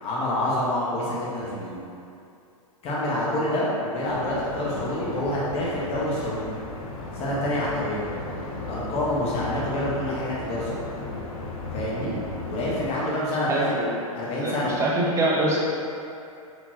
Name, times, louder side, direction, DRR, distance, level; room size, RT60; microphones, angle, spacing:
voice 1, 0.0-1.8 2.8-6.5 7.1-8.1 8.7-10.8 11.7-12.1 12.5-13.9 14.1-14.8, left 1 dB, 30° left, -7 dB, 1.4 m, -27 dB
sound 1, 4.1-12.9, left 2 dB, 70° left, 0.8 m, -35 dB
voice 2, 13.5-13.9 14.4-15.6, right 1 dB, 15° right, -4 dB, 0.8 m, -24 dB
4.9 x 3.7 x 2.9 m, 2.6 s
hypercardioid pair, 115°, 19 cm